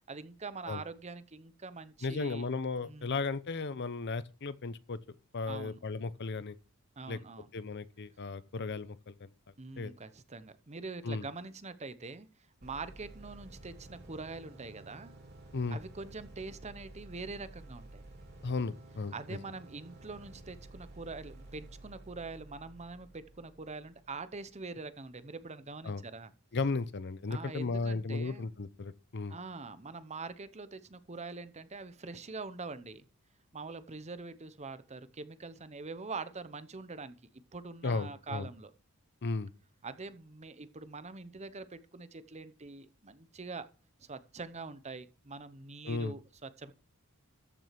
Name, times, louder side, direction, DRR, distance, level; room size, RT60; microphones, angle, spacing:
voice 1, 0.1-2.5 2.8-3.2 5.5-5.8 7.0-7.5 9.6-12.3 12.6-15.1 15.7-18.0 19.1-26.3 27.3-28.5 29.3-33.0 33.5-37.2 37.5-38.7 39.8-43.7 44.0-46.7, right 3 dB, 30° right, 0.8 m, -44 dB
voice 2, 2.0-5.0 5.3-6.6 7.1-7.2 7.5-9.3 9.8-9.9 11.0-11.3 15.5-15.8 18.4-19.4 25.8-26.0 26.5-29.4 37.8-38.5 39.2-39.5 45.8-46.1, left 3 dB, 50° left, 0.7 m, -35 dB
sound 1, 12.6-24.5, right 2 dB, 50° right, 3.5 m, -52 dB
14.0 x 6.3 x 5.9 m
head